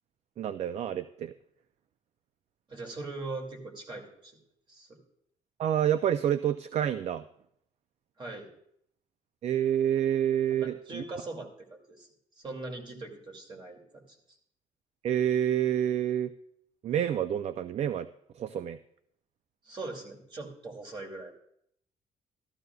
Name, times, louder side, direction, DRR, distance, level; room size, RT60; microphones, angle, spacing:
voice 1, 0.4-1.3 5.6-7.2 9.4-11.0 15.0-16.3 16.8-18.1 18.4-18.8, right 10 dB, 50° right, 12 dB, 0.4 m, -28 dB
voice 2, 2.7-4.4 4.7-5.0 8.2-8.5 10.6-12.1 12.4-14.2 19.6-21.3, right 2 dB, 35° right, 1 dB, 2.4 m, -41 dB
13.5 x 13.5 x 2.3 m, 0.72 s
cardioid pair, 110°, 14 cm